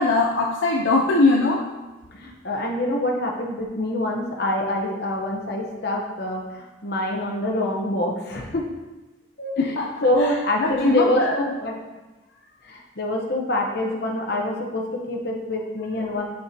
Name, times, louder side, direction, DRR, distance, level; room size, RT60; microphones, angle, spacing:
voice 1, 0.0-1.7 9.6-11.3 16.1-16.2, left 3 dB, 70° left, -1 dB, 0.5 m, -21 dB
voice 2, 2.1-8.6 9.4-9.8 10.0-11.7 12.6-16.3, left 1 dB, 55° left, 0 dB, 1.0 m, -25 dB
6.7 x 6.3 x 2.9 m, 1.1 s
head